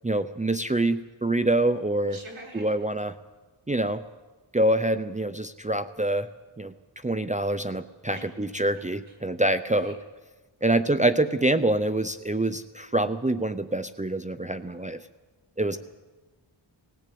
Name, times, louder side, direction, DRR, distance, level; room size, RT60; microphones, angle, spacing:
voice 1, 0.0-2.2 2.6-3.1 3.7-4.0 4.5-6.3 6.6-6.7 7.0-9.9 10.6-15.0 15.6-15.8, right 1 dB, 15° right, 9 dB, 0.7 m, -25 dB
voice 2, 2.1-2.8 8.1-8.3 9.1-9.2 9.7-10.0 10.6-10.8 14.6-14.9, right 1 dB, 75° right, 1 dB, 5.5 m, -46 dB
20.0 x 17.0 x 8.6 m, 1.3 s
wide cardioid pair, 85°, 48 cm